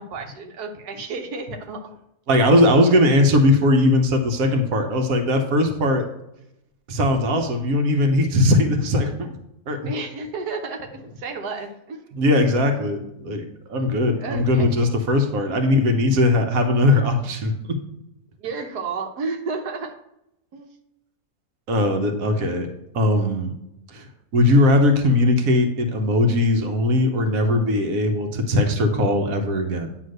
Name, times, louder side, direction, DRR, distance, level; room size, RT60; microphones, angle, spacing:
voice 1, 0.0-1.8 9.8-12.1 14.2-14.6 18.4-19.9 20.5-20.7, right 4 dB, 90° right, 5 dB, 1.6 m, -32 dB
voice 2, 2.3-6.1 6.9-9.3 9.7-9.9 12.1-13.4 13.7-17.8 21.7-22.7 22.9-23.5 23.9-24.1 24.3-30.0, left 1 dB, 65° right, 5 dB, 1.4 m, -19 dB
9.4 x 3.2 x 6.5 m, 0.84 s
omnidirectional pair, 1.6 m